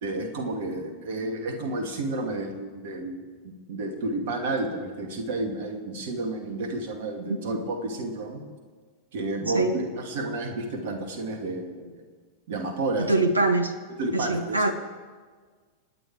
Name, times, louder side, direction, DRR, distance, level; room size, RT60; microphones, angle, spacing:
voice 1, 0.0-8.4 9.1-12.0 12.5-13.1 14.0-14.6, right 2 dB, 55° right, 4 dB, 2.4 m, -31 dB
voice 2, 13.1-13.7 14.1-14.7, right 2 dB, 80° right, 10 dB, 0.9 m, -23 dB
27.0 x 9.4 x 4.8 m, 1.5 s
figure-of-eight pair, 90°, 0 cm